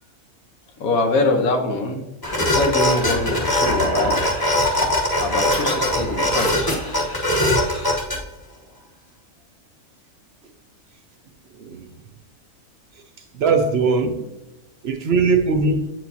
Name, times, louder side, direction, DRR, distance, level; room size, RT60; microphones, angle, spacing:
voice 1, 0.8-2.0 2.4-4.4 5.2-6.7, left 2 dB, 85° left, 4 dB, 1.4 m, -23 dB
sound 1, 2.2-8.2, left 1 dB, 20° left, 0.9 m, -21 dB
voice 2, 11.6-11.9 13.3-14.2 14.8-15.9, right 4 dB, 60° right, 6 dB, 0.7 m, -20 dB
8.1 x 4.6 x 2.7 m, 0.98 s
omnidirectional pair, 1.4 m